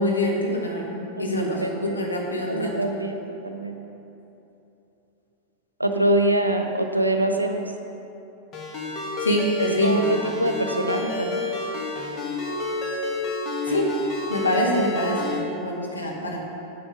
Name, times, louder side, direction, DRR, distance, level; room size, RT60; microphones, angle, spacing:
voice 1, 0.0-2.7 9.2-10.1 13.7-13.9 14.3-16.4, left 1 dB, 80° left, -2 dB, 1.6 m, -25 dB
voice 2, 1.2-2.0 2.5-3.8 5.8-7.6 9.6-11.4, right 1 dB, 85° right, 5 dB, 0.7 m, -25 dB
Ringtone, 8.5-15.4, left 2 dB, 30° left, 1.7 m, -30 dB
8.0 x 7.9 x 5.4 m, 3.0 s
figure-of-eight pair, 90°, 0 cm